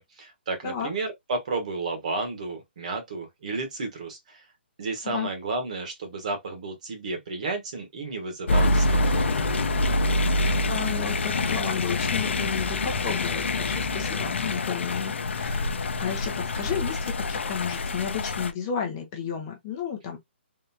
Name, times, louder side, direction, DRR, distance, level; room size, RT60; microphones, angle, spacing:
voice 1, 0.0-4.4 4.8-9.5, right 3 dB, 35° right, 1.2 m, -32 dB
sound 1, 8.5-18.5, left 2 dB, 85° left, 0.7 m, -26 dB
voice 2, 10.4-20.2, left 7 dB, 20° left, 0.8 m, -33 dB
3.8 x 3.3 x 2.7 m
hypercardioid pair, 175°, 6 cm